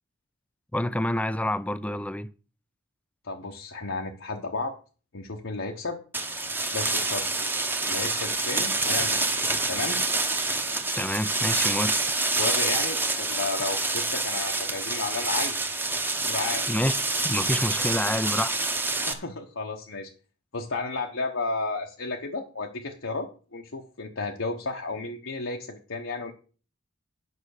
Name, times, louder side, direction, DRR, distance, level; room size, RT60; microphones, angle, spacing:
voice 1, 0.7-2.3 11.0-12.0 16.7-16.9 17.2-18.7, left 1 dB, 5° left, 0.4 m, -28 dB
voice 2, 3.2-4.8 5.1-6.0 6.7-7.3 7.9-9.2 9.7-10.0 12.3-15.6 16.2-16.6 19.1-20.1 20.5-26.3, left 3 dB, 75° left, 1.0 m, -33 dB
sound 1, 6.1-19.1, right 2 dB, 10° right, 1.0 m, -27 dB
9.6 x 5.9 x 6.4 m
head